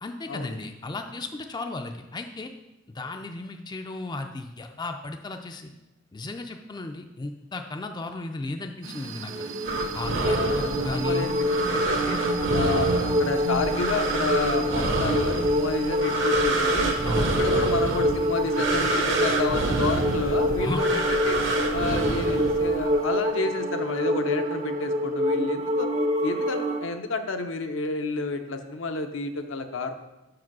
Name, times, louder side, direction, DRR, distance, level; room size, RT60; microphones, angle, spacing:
voice 1, 0.0-2.5 2.9-5.7 6.1-9.5 9.9-11.3 17.0-17.3 20.6-20.8, left 2 dB, 20° left, 5 dB, 0.4 m, -34 dB
sound 1, 8.8-25.2, right 3 dB, 85° right, 0.8 m, -40 dB
sound 2, 9.3-26.9, equal, 35° right, 0.6 m, -26 dB
sound 3, 9.6-22.9, right 2 dB, 65° right, 1.1 m, -28 dB
voice 2, 10.2-11.3 11.6-12.2 12.5-16.9 17.4-21.4 21.7-25.9 26.2-29.9, left 3 dB, 70° left, 6 dB, 0.7 m, -30 dB
6.0 x 4.9 x 6.1 m, 0.97 s
head